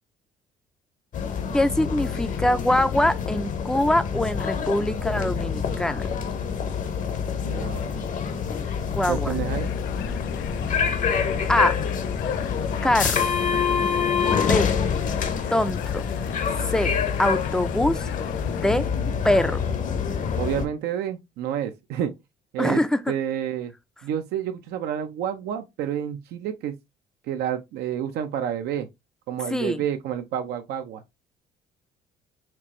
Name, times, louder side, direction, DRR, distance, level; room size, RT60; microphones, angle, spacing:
sound 1, 1.1-20.7, left 6 dB, 50° left, 0.8 m, -26 dB
voice 1, 1.5-6.0 8.9-9.4 11.5-11.8 12.8-13.2 14.5-14.7 15.5-16.0 16.7-16.9 17.2-18.1 18.5-18.9 19.2-19.6 22.6-23.0 29.5-29.8, left 1 dB, 5° left, 0.4 m, -23 dB
voice 2, 7.4-8.0 9.1-9.7 20.4-22.1 22.5-22.8 23.1-23.7 24.0-26.8 27.3-28.9 29.3-31.0, right 9 dB, 75° right, 0.6 m, -29 dB
sound 2, 9.5-18.9, left 13 dB, 85° left, 0.5 m, -40 dB
4.4 x 2.5 x 3.0 m
cardioid pair, 110°, 17 cm